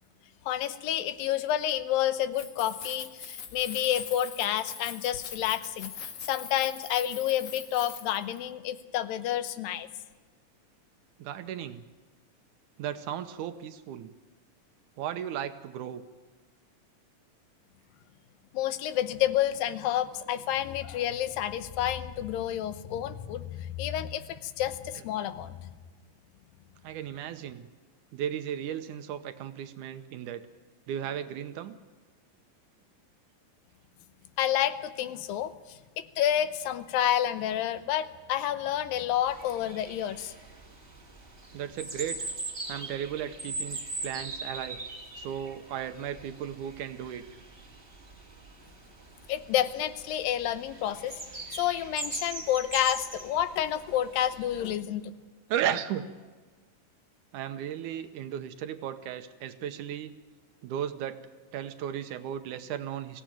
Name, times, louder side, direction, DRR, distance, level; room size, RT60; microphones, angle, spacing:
voice 1, 0.5-5.9 6.2-9.9 18.5-25.6 34.4-40.3 49.3-51.2 51.5-55.1, left 11 dB, 85° left, 12 dB, 2.6 m, -29 dB
Keys jangling, 2.3-8.4, left 7 dB, 55° left, 2.3 m, -42 dB
voice 2, 11.2-11.8 12.8-14.1 15.0-16.0 25.0-25.1 26.8-27.7 28.1-30.5 30.9-31.8 41.5-42.3 42.7-44.8 45.2-47.2 55.5-56.1 57.3-60.2 60.6-61.2 61.5-63.2, right 10 dB, 70° right, 9 dB, 2.2 m, -35 dB
sound 1, 39.3-54.7, right 2 dB, 20° right, 1.9 m, -41 dB
22.5 x 16.5 x 9.0 m, 1.3 s
omnidirectional pair, 4.0 m